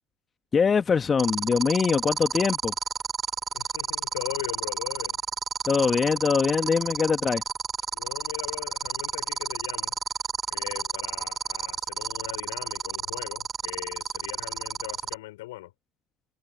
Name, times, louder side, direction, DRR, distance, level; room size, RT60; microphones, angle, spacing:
voice 1, 0.5-2.7 5.6-7.4, left 6 dB, 30° left, 1.4 m, -23 dB
sound 1, 1.2-15.1, right 6 dB, 30° right, 4.2 m, -30 dB
voice 2, 3.5-5.2 7.9-10.0 10.5-15.7, left 18 dB, 75° left, 4.2 m, -39 dB
hypercardioid pair, 75°, 0 cm